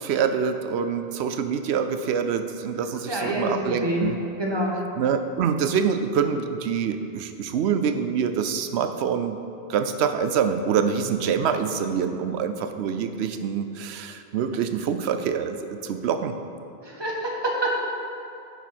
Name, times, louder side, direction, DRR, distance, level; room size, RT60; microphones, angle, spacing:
voice 1, 0.0-4.2 5.0-9.4 9.7-16.3, right 7 dB, 80° right, 9 dB, 0.9 m, -25 dB
voice 2, 3.1-4.8 16.8-17.8, equal, 25° right, -3 dB, 1.5 m, -27 dB
10.0 x 6.9 x 4.3 m, 2.7 s
omnidirectional pair, 1.1 m